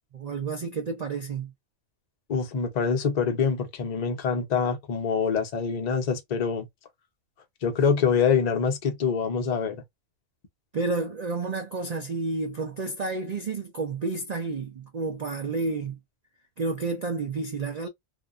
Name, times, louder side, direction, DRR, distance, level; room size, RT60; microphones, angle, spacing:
voice 1, 0.1-1.5 10.7-16.0 16.6-17.9, right 3 dB, 80° right, 0.3 m, -30 dB
voice 2, 2.3-6.7 7.6-9.8, left 6 dB, 40° left, 0.6 m, -25 dB
2.6 x 2.3 x 2.4 m
omnidirectional pair, 1.4 m